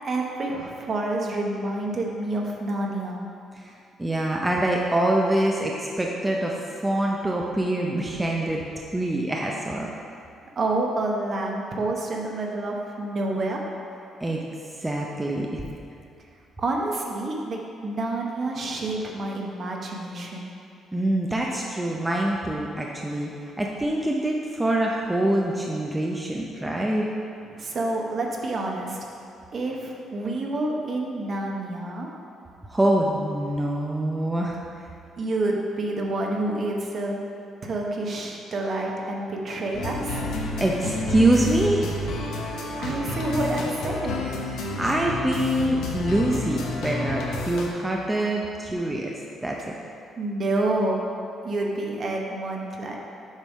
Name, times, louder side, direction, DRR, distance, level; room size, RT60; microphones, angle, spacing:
voice 1, 0.0-3.2 10.6-13.6 16.6-20.5 27.5-29.0 29.5-32.1 35.2-37.2 37.6-40.2 42.8-44.2 50.2-51.0 51.4-53.0, right 2 dB, 45° right, 0 dB, 0.9 m, -28 dB
voice 2, 4.0-6.6 6.8-8.6 8.9-9.9 14.2-14.4 14.8-15.7 20.9-23.3 23.6-27.1 32.7-34.6 40.6-41.9 44.8-49.2 49.4-49.7, right 1 dB, 15° right, -2 dB, 0.5 m, -25 dB
sound 1, 39.7-47.7, left 1 dB, 80° left, 0.9 m, -30 dB
7.3 x 3.5 x 5.3 m, 2.6 s
cardioid pair, 110°, 0 cm